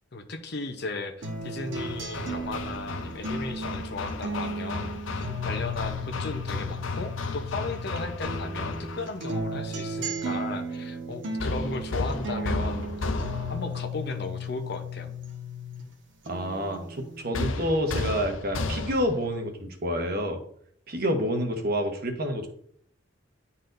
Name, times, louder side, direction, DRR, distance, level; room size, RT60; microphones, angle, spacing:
voice 1, 0.1-12.9 13.5-15.1, left 3 dB, 60° left, 6 dB, 0.8 m, -36 dB
sound 1, 1.2-7.9 8.2-15.9 16.3-17.2, equal, 75° right, 1.2 m, -35 dB
Hammer, 1.7-9.2 11.4-13.8 17.3-19.3, left 3 dB, 85° left, 0.6 m, -33 dB
voice 2, 16.3-20.4 20.9-22.5, equal, 50° right, 4 dB, 1.1 m, -28 dB
10.5 x 4.1 x 2.6 m, 0.63 s
head